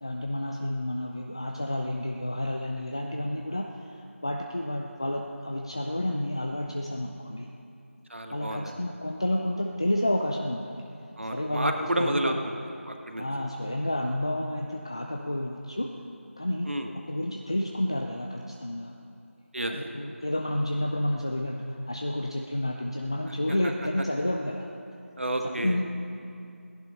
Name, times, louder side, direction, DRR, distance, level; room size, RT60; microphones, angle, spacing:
voice 1, 0.0-7.5 8.3-10.7 11.3-12.4 13.2-15.9 16.4-16.7 17.1-18.9 19.7-24.7 25.6-25.9, left 1 dB, 20° left, 1 dB, 0.4 m, -30 dB
voice 2, 8.1-8.8 11.2-13.3 16.6-16.9 19.5-19.8 23.5-23.7 25.2-25.8, right 1 dB, 55° right, 4 dB, 1.4 m, -30 dB
17.0 x 10.5 x 5.5 m, 2.5 s
figure-of-eight pair, 170°, 8 cm